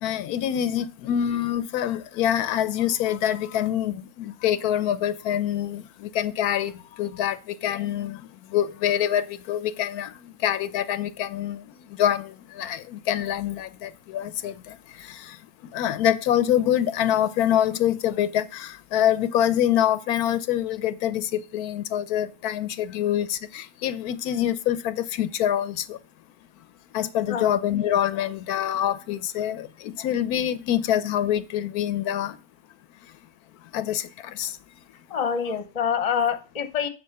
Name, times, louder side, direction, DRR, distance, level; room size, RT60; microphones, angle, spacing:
voice 1, 0.0-8.2 8.5-11.7 12.0-15.4 15.7-26.0 26.9-32.4 33.7-34.6, left 11 dB, 90° left, 1.1 m, -25 dB
voice 2, 35.1-36.9, left 7 dB, 30° left, 0.8 m, -26 dB
8.5 x 4.2 x 6.5 m
omnidirectional pair, 1.6 m